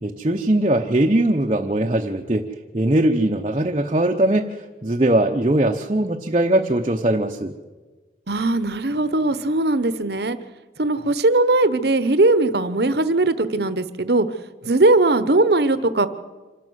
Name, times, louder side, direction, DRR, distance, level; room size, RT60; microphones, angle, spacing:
voice 1, 0.0-2.5 2.7-7.5, right 1 dB, 30° right, 2 dB, 0.8 m, -20 dB
voice 2, 8.3-10.4 10.8-14.3 14.6-16.1, right 2 dB, 60° right, 13 dB, 1.0 m, -19 dB
26.5 x 12.5 x 8.1 m, 1.3 s
head